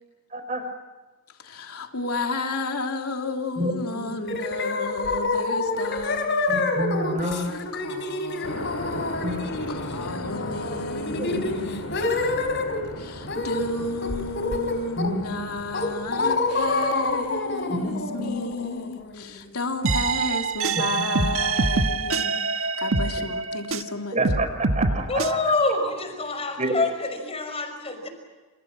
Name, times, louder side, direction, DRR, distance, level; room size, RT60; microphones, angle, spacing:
voice 1, 0.3-0.6 3.6-4.4 6.5-7.6 8.9-9.4 11.2-11.7 15.0-15.4 17.7-18.5 20.8-20.9 21.1-21.3 24.1-25.1 26.6-26.8, right 1 dB, 30° right, 7 dB, 5.0 m, -29 dB
voice 2, 1.4-6.3 7.2-9.3 9.7-12.0 13.0-24.2, left 2 dB, 90° left, 3 dB, 3.0 m, -32 dB
sound 1, 4.3-12.8 13.3-13.7 14.0-15.3 15.7-19.5, left 3 dB, 55° left, 4.3 m, -28 dB
sound 2, 8.4-17.5, left 1 dB, 70° left, 6.1 m, -37 dB
sound 3, 19.8-23.9 24.2-25.3, right 4 dB, 65° right, 1.6 m, -25 dB
voice 3, 25.1-28.1, left 2 dB, 25° left, 6 dB, 5.6 m, -26 dB
29.5 x 28.0 x 6.1 m, 1.3 s
head